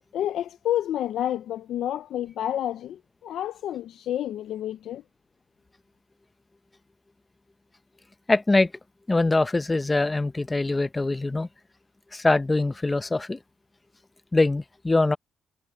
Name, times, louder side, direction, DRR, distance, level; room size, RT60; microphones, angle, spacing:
voice 1, 0.1-5.0, left 11 dB, 75° left, 0.6 m, -29 dB
voice 2, 8.3-8.7 9.1-11.5 12.1-13.4 14.3-15.2, left 2 dB, 20° left, 0.8 m, -23 dB
cardioid pair, 90°, 0 cm